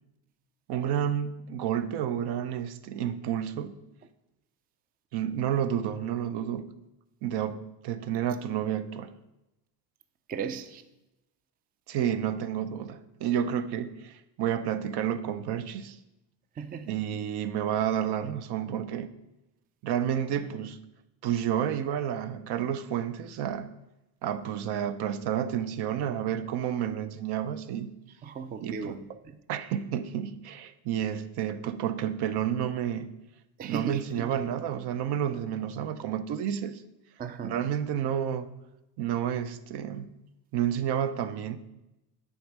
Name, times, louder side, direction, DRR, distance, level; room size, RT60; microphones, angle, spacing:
voice 1, 0.7-3.8 5.1-6.7 7.2-9.1 11.9-16.0 16.9-19.1 19.8-20.8 21.2-23.7 24.2-27.9 28.6-29.0 29.5-33.1 33.6-36.8 37.4-38.5 39.0-40.1 40.5-41.6, right 9 dB, 60° right, 0.7 m, -30 dB
voice 2, 10.3-10.8 16.6-17.0 28.2-29.4 33.6-34.3 37.2-37.5, right 6 dB, 20° right, 0.4 m, -36 dB
8.4 x 3.6 x 6.2 m
supercardioid pair, 100°, 44 cm